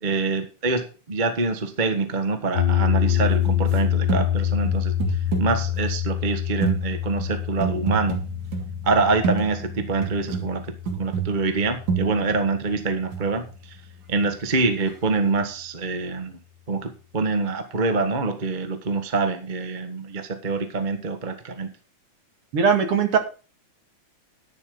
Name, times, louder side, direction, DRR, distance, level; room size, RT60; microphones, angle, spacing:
voice 1, 0.0-8.2 8.8-10.6 11.0-13.8 14.1-16.4 16.7-21.7, right 3 dB, 30° right, 7 dB, 0.9 m, -25 dB
sound 1, 2.5-12.8, left 11 dB, 45° left, 1.8 m, -26 dB
sound 2, 3.1-3.8 4.1-4.3 4.7-5.9 6.6-10.5 10.8-13.5 14.9-15.0, right 6 dB, 90° right, 4.0 m, -29 dB
voice 2, 22.5-23.2, right 6 dB, 50° right, 6 dB, 2.8 m, -19 dB
11.5 x 10.5 x 3.8 m, 0.34 s
omnidirectional pair, 3.3 m